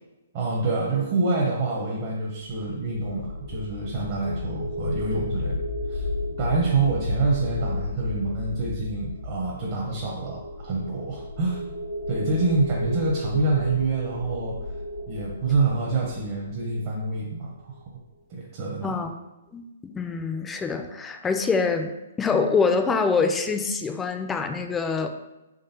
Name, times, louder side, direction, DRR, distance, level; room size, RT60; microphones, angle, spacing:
voice 1, 0.3-5.6 5.9-6.1 6.4-11.6 12.1-14.6 15.1-17.7 18.3-19.0, right 3 dB, 40° right, -3 dB, 0.7 m, -26 dB
sound 1, 2.4-17.5, left 2 dB, 75° left, 0.8 m, -33 dB
voice 2, 19.5-25.1, left 4 dB, 10° left, 6 dB, 0.3 m, -25 dB
3.7 x 3.4 x 2.8 m, 0.98 s
hypercardioid pair, 135°, 0 cm